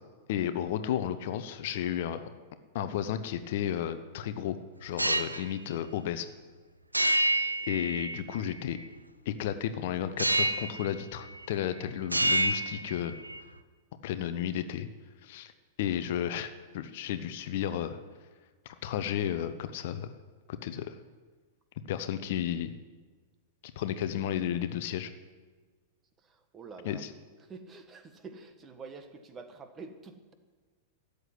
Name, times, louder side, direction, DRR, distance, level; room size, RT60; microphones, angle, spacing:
voice 1, 0.3-2.3 2.7-6.3 7.2-8.8 9.2-13.1 14.0-14.9 15.2-15.5 15.8-18.0 18.6-20.1 20.5-21.0 21.9-22.7 23.8-25.1 26.8-27.1, left 10 dB, 50° left, 11 dB, 0.9 m, -33 dB
sound 1, 4.8-5.4 6.9-8.4 10.2-10.9 11.2-11.7 12.0-13.4, right 1 dB, 85° right, 0.8 m, -28 dB
voice 2, 26.2-27.0 27.5-30.3, right 4 dB, 20° right, 7 dB, 1.7 m, -47 dB
14.0 x 8.3 x 9.9 m, 1.4 s
figure-of-eight pair, 95°, 0 cm